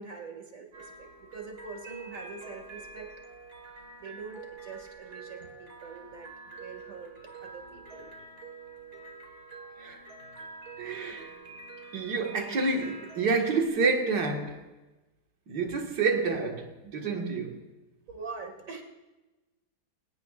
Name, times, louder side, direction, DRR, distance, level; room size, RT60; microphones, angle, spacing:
voice 1, 0.0-3.1 4.0-7.1 7.4-8.1 18.1-18.8, right 4 dB, 50° right, 2.4 m, -44 dB
sound 1, 0.7-13.7, right 4 dB, 70° right, 2.3 m, -47 dB
voice 2, 10.8-11.3 11.9-14.6 15.5-17.6, right 4 dB, 85° right, 2.3 m, -28 dB
25.5 x 17.5 x 2.5 m
omnidirectional pair, 1.8 m